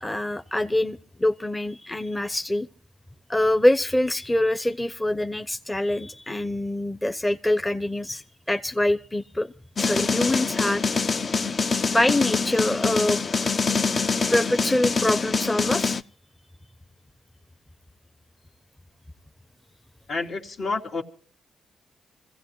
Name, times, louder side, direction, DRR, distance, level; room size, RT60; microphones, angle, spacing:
voice 1, 0.0-2.7 3.3-9.5 9.8-10.8 11.9-13.2 14.3-16.0, left 1 dB, 15° left, 0.8 m, -24 dB
sound 1, 9.8-16.0, left 4 dB, 45° left, 0.6 m, -25 dB
voice 2, 20.1-21.0, left 3 dB, 65° left, 2.3 m, -29 dB
26.5 x 16.0 x 3.1 m
supercardioid pair, 65°, 0 cm